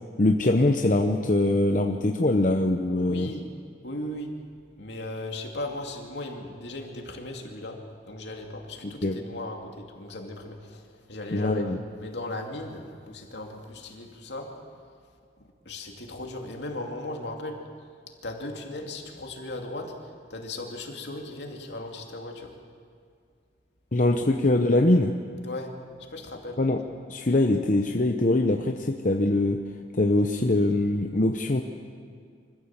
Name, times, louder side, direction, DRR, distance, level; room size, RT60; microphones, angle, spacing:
voice 1, 0.2-3.3 9.0-9.2 11.3-11.8 23.9-25.1 26.6-26.8 27.1-29.6 30.0-31.6, left 2 dB, 45° left, 3 dB, 0.8 m, -23 dB
voice 2, 3.0-3.6 3.8-4.4 4.8-11.7 12.0-14.6 15.7-17.7 18.2-22.6 25.4-25.8 26.1-26.6, left 1 dB, 70° left, 2 dB, 2.5 m, -37 dB
25.0 x 15.0 x 7.4 m, 2.2 s
head